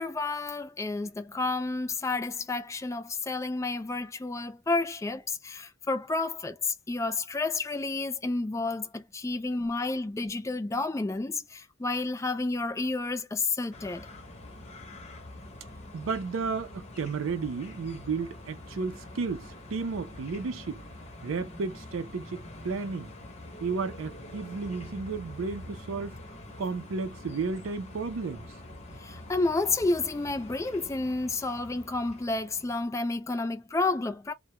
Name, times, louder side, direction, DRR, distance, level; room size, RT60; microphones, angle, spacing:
voice 1, 0.0-14.1 29.0-34.3, left 3 dB, 15° left, 0.3 m, -30 dB
sound 1, 13.7-32.8, left 1 dB, 35° left, 0.7 m, -45 dB
voice 2, 15.9-20.8 21.2-23.1 23.6-26.2 26.6-28.5, right 4 dB, 85° right, 0.5 m, -33 dB
2.2 x 2.1 x 2.8 m
head